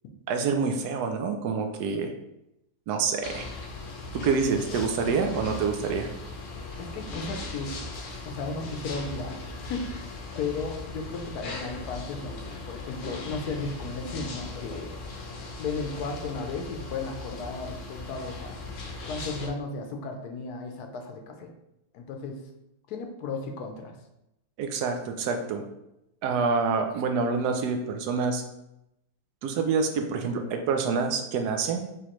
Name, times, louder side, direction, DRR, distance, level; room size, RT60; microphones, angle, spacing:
voice 1, 0.3-2.1 2.9-3.5 4.1-6.1 24.6-25.6 26.2-28.4 29.4-31.9, right 5 dB, 80° right, 5 dB, 1.1 m, -27 dB
sound 1, 3.2-19.5, left 3 dB, 60° left, 0.9 m, -38 dB
voice 2, 6.8-7.8 8.2-10.1 10.4-14.9 15.6-18.6 19.1-21.5 21.9-22.4 22.9-23.9, left 3 dB, 75° left, 4 dB, 1.2 m, -35 dB
5.0 x 3.1 x 3.0 m, 0.85 s
omnidirectional pair, 1.7 m